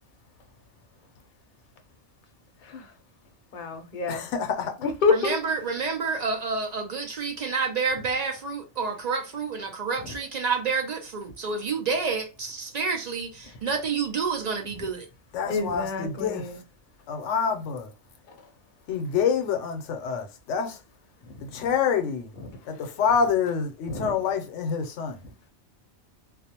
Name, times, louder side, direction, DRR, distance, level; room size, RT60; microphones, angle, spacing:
voice 1, 3.5-4.2 5.0-5.3 10.0-10.1 15.5-16.5 23.9-24.1, left 4 dB, 50° left, 0.7 m, -27 dB
voice 2, 4.1-4.7 15.3-16.5 17.1-17.9 18.9-20.8 21.4-22.3 22.7-25.2, left 6 dB, 85° left, 0.9 m, -27 dB
voice 3, 5.1-15.1, right 5 dB, 65° right, 0.4 m, -29 dB
2.4 x 2.0 x 2.8 m
omnidirectional pair, 1.2 m